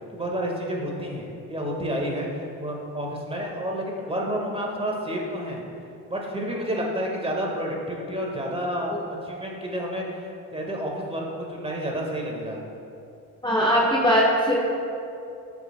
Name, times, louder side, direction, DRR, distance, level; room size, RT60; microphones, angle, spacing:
voice 1, 0.1-5.6 6.1-12.6, equal, 15° right, -1 dB, 1.7 m, -30 dB
voice 2, 13.4-14.5, equal, 10° left, -5 dB, 1.2 m, -20 dB
13.0 x 6.0 x 2.3 m, 2.6 s
hypercardioid pair, 55°, 44 cm